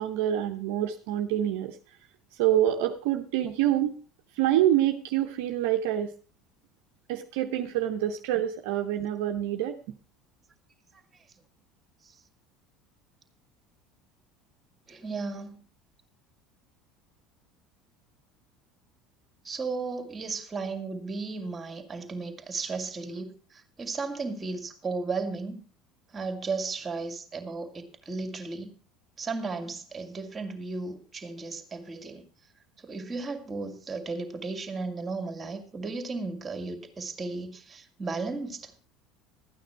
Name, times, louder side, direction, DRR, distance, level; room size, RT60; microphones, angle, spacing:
voice 1, 0.0-1.8 2.4-4.0 4.3-6.1 7.1-9.8, right 12 dB, 70° right, 5 dB, 0.8 m, -26 dB
voice 2, 14.9-15.6 19.4-25.6 26.1-28.7 29.2-32.2 32.8-38.7, right 3 dB, 25° right, 6 dB, 2.3 m, -35 dB
13.0 x 9.2 x 4.6 m, 0.39 s
hypercardioid pair, 75°, 0 cm